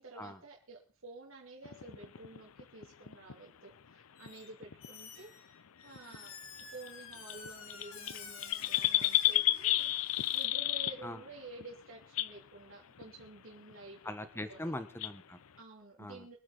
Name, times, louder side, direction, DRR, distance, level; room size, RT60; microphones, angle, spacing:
voice 1, 0.0-5.5 5.8-14.0 14.5-14.7 15.6-16.4, right 2 dB, 70° right, -3 dB, 3.0 m, -51 dB
sound 1, 1.6-3.3 4.3-4.4 4.6-4.9 5.9-6.3 6.6-6.7 6.9-7.0 7.1-11.3 11.6-11.7 12.0-12.4 13.0-13.3 13.7-13.8 14.1-14.2 14.4-14.5 15.0-15.1, left 15 dB, 90° left, 0.6 m, -31 dB
Squeak, 4.2-4.5 4.8-10.4, left 6 dB, 75° left, 2.6 m, -51 dB
voice 2, 14.0-15.4 16.0-16.3, left 1 dB, 10° left, 10 dB, 1.2 m, -41 dB
24.0 x 8.7 x 4.0 m, 0.35 s
head